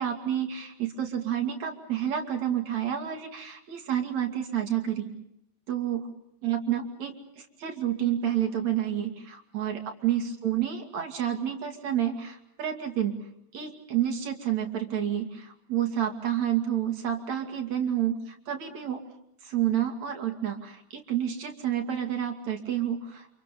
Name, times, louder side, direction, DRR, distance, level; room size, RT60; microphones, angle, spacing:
voice 1, 0.0-5.1 5.7-6.1 6.4-13.2 13.5-19.0 19.4-23.3, right 10 dB, 65° right, 3 dB, 3.8 m, -29 dB
30.0 x 27.5 x 5.4 m, 0.77 s
omnidirectional pair, 3.5 m